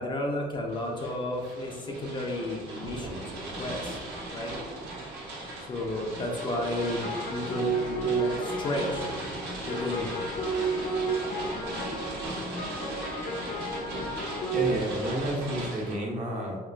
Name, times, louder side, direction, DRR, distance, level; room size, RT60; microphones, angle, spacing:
voice 1, 0.0-4.0 4.3-4.6 5.6-9.1 9.6-10.1, left 1 dB, 30° left, 0 dB, 0.4 m, -33 dB
sound 1, 0.7-15.9, right 1 dB, 85° right, 1.1 m, -38 dB
sound 2, 2.7-15.7, right 3 dB, 65° right, 0.4 m, -44 dB
sound 3, 6.3-14.8, right 3 dB, 65° left, 0.7 m, -32 dB
voice 2, 14.5-16.6, right 1 dB, 45° right, -1 dB, 0.7 m, -30 dB
3.7 x 2.4 x 2.2 m, 1.4 s
cardioid pair, 110°, 17 cm